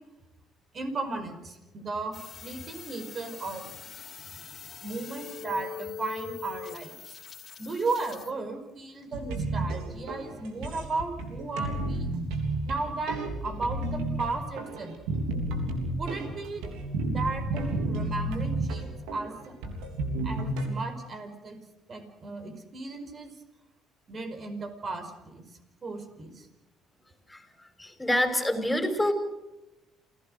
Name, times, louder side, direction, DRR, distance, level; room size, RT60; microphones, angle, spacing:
voice 1, 0.7-3.7 4.8-7.2 7.6-12.1 12.6-15.0 16.0-16.7 17.0-19.3 20.2-21.6 21.9-23.3 24.1-25.5 25.8-26.5, right 3 dB, 40° right, 7 dB, 5.2 m, -35 dB
sound 1, 2.1-8.3, left 7 dB, 45° left, 2.7 m, -43 dB
sound 2, 9.1-20.7, right 2 dB, 80° right, 3.6 m, -32 dB
voice 2, 27.8-29.1, left 1 dB, 5° left, 5 dB, 5.8 m, -26 dB
28.5 x 17.5 x 6.6 m, 0.98 s
hypercardioid pair, 65°, 0 cm